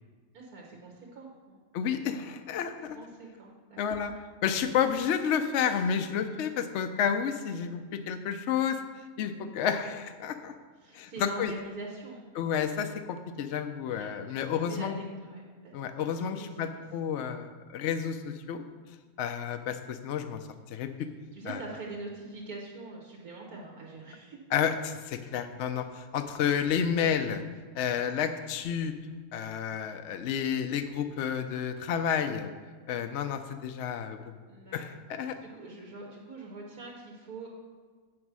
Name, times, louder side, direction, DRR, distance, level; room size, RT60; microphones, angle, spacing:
voice 1, 0.3-1.6 2.9-3.8 10.8-12.2 13.9-14.1 14.4-15.7 16.0-16.8 21.3-24.4 34.5-34.8 35.4-37.5, right 3 dB, 80° right, -1 dB, 1.8 m, -44 dB
voice 2, 1.7-3.0 3.8-4.1 4.4-8.8 9.2-10.5 10.9-11.5 12.3-15.0 15.7-18.6 19.2-20.9 21.5-21.6 24.5-27.4 27.7-28.9 29.3-32.5 32.9-34.2 34.7-35.4, left 8 dB, 65° left, 7 dB, 0.8 m, -30 dB
8.2 x 6.1 x 6.1 m, 1.5 s
omnidirectional pair, 1.5 m